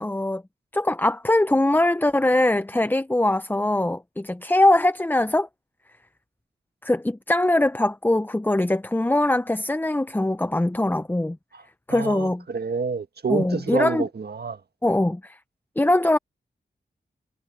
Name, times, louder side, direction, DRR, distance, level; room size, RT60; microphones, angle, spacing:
voice 1, 0.0-0.4 0.7-5.5 6.8-11.4 11.9-12.4 13.3-14.1 14.8-15.4 15.8-16.2, left 1 dB, 10° left, 0.5 m, -22 dB
voice 2, 11.9-14.6, right 5 dB, 60° right, 1.5 m, -28 dB
cardioid pair, 55°, 19 cm